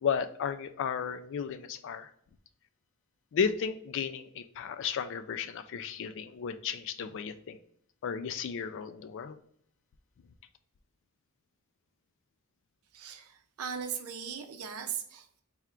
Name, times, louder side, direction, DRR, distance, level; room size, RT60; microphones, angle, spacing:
voice 1, 0.0-2.1 3.3-7.6 8.0-9.4, left 7 dB, 55° left, 12 dB, 0.3 m, -34 dB
voice 2, 12.9-15.4, right 7 dB, 75° right, 6 dB, 0.5 m, -39 dB
3.5 x 2.4 x 4.3 m, 0.68 s
head